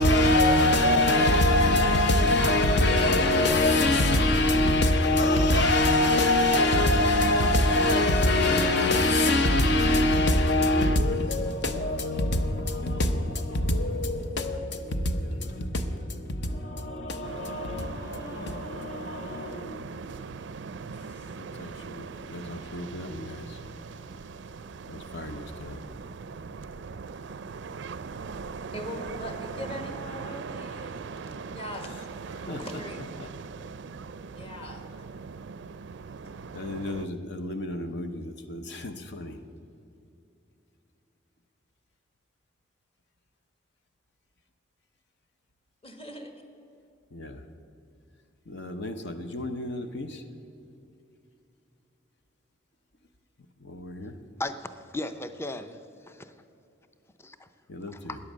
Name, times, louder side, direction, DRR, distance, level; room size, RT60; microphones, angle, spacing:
voice 1, 0.0-20.1 21.4-23.6 24.9-25.8 32.3-32.6 36.5-39.4 47.1-47.4 48.5-50.2 53.6-54.1 57.7-58.2, left 1 dB, 60° left, 0.8 m, -25 dB
sound 1, 17.2-37.1, right 5 dB, 65° right, 0.4 m, -40 dB
voice 2, 28.7-30.9 31.3-32.1 32.4-33.3 34.3-34.9 36.2-36.3 45.8-46.3, left 1 dB, 30° left, 1.5 m, -40 dB
voice 3, 54.4-55.8 56.1-56.2 57.2-57.5 57.9-58.2, left 1 dB, 15° left, 0.5 m, -36 dB
13.5 x 9.9 x 7.4 m
head